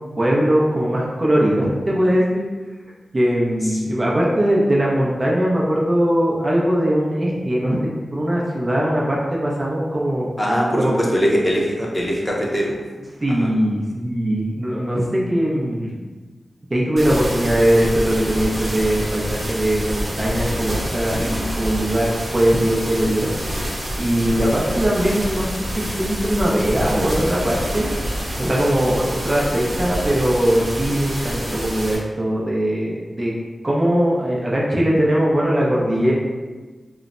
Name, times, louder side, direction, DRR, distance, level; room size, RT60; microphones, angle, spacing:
voice 1, 0.2-2.4 3.1-7.8 8.1-10.3 10.8-10.9 13.2-15.9 16.7-23.3 24.0-27.9 28.4-33.3 33.6-36.1, equal, 35° right, -4 dB, 0.6 m, -20 dB
voice 2, 10.4-12.8 13.4-13.5 16.0-16.1, equal, 20° left, -3 dB, 0.6 m, -21 dB
sound 1, 17.0-32.0, equal, 65° right, 1.0 m, -27 dB
3.1 x 2.0 x 2.5 m, 1.3 s
wide cardioid pair, 65°, 0 cm